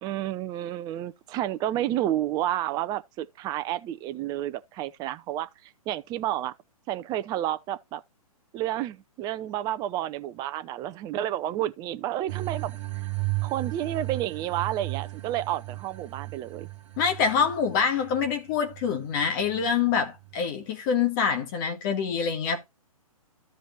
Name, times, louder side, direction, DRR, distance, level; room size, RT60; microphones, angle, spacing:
voice 1, 0.0-5.5 5.9-6.5 6.9-8.0 8.5-12.8 13.4-16.7, right 12 dB, 20° right, 0.6 m, -30 dB
sound 1, 12.3-20.4, right 22 dB, 55° right, 1.1 m, -35 dB
voice 2, 17.0-22.7, left 6 dB, 35° left, 1.9 m, -26 dB
14.0 x 5.1 x 2.8 m
figure-of-eight pair, 120°, 19 cm